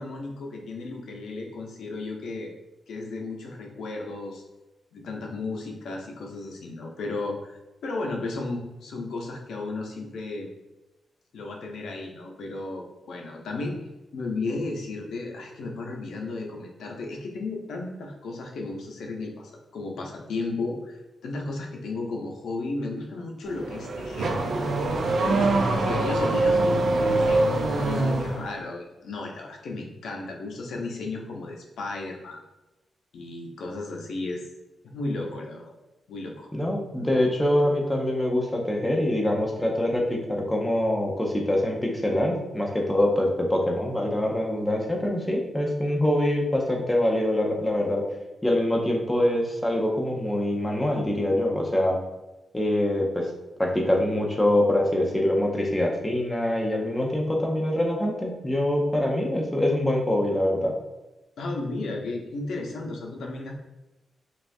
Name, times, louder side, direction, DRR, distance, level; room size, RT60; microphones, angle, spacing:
voice 1, 0.0-2.5 2.9-4.4 4.9-10.5 11.3-13.8 14.1-24.3 25.1-32.4 33.1-34.4 34.9-35.8 36.1-36.5 61.4-63.5, left 3 dB, 90° left, 1 dB, 0.7 m, -34 dB
Car / Accelerating revving vroom, 23.5-28.5, right 2 dB, 50° right, 0.5 m, -24 dB
voice 2, 36.5-48.0 48.4-52.0 52.5-53.3 53.6-60.7, left 1 dB, 10° left, 0 dB, 0.6 m, -24 dB
5.4 x 2.4 x 2.6 m, 1.0 s
wide cardioid pair, 175°, 0 cm